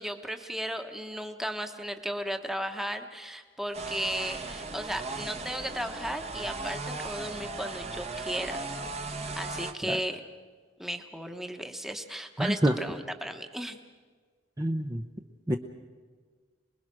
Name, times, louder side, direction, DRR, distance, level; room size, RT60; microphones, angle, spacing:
voice 1, 0.0-8.6 9.4-10.2 10.8-13.8, equal, ahead, 6 dB, 1.3 m, -35 dB
sound 1, 3.7-9.7, right 3 dB, 35° right, 1.3 m, -37 dB
voice 2, 12.4-12.7 14.6-15.0 15.5-15.6, right 1 dB, 20° right, 2 dB, 0.8 m, -26 dB
27.0 x 21.0 x 6.2 m, 1.5 s
head